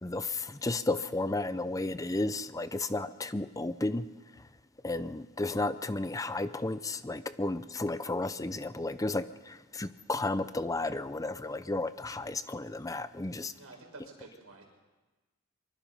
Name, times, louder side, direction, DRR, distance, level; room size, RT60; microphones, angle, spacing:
voice 1, 0.0-4.1 4.8-13.5, left 2 dB, 15° left, 0.6 m, -33 dB
voice 2, 13.6-14.7, right 2 dB, 75° right, 5.7 m, -50 dB
24.0 x 23.5 x 5.4 m
head